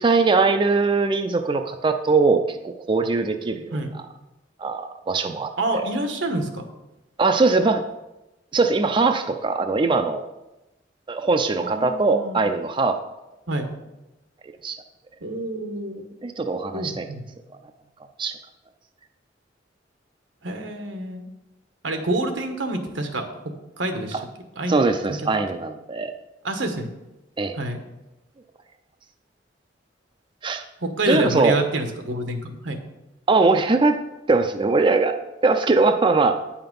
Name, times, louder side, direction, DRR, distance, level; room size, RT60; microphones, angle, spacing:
voice 1, 0.0-3.8 4.6-5.9 7.2-7.8 8.5-10.2 11.1-13.0 14.6-14.8 16.2-17.1 18.2-18.4 24.7-26.1 27.4-27.5 30.4-30.6 31.1-31.6 33.3-34.0 34.3-35.2 35.4-36.4, right 3 dB, 25° right, 7 dB, 0.4 m, -21 dB
voice 2, 5.6-6.6 11.6-12.4 13.5-13.7 15.2-16.0 16.7-17.2 20.4-21.2 21.8-23.3 23.8-24.2 24.6-24.8 26.4-26.9 27.5-27.8 30.8-32.8, right 2 dB, 85° right, 6 dB, 1.3 m, -27 dB
9.5 x 5.8 x 5.3 m, 0.98 s
head